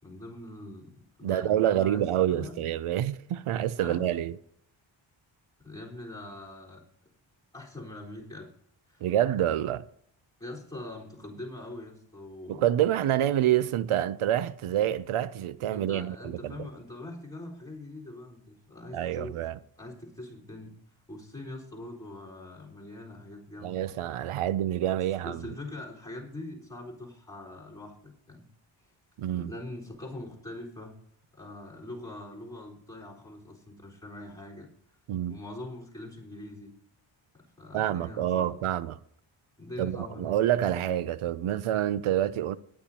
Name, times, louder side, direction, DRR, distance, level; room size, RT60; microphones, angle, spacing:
voice 1, 0.0-2.6 3.8-4.1 5.6-6.8 7.5-8.5 8.9-9.1 10.4-12.7 15.7-19.4 19.8-20.7 21.1-24.0 25.2-28.5 29.4-31.0 31.3-34.7 35.3-36.7 37.3-38.6 39.6-40.4, left 1 dB, 5° left, 4.2 m, -43 dB
voice 2, 1.2-4.4 9.0-9.8 12.5-16.2 16.4-16.5 18.9-19.6 23.6-25.4 29.2-29.5 35.1-35.4 37.7-39.0 39.8-42.6, right 11 dB, 85° right, 0.7 m, -27 dB
19.0 x 10.5 x 2.9 m
wide cardioid pair, 140°, 49 cm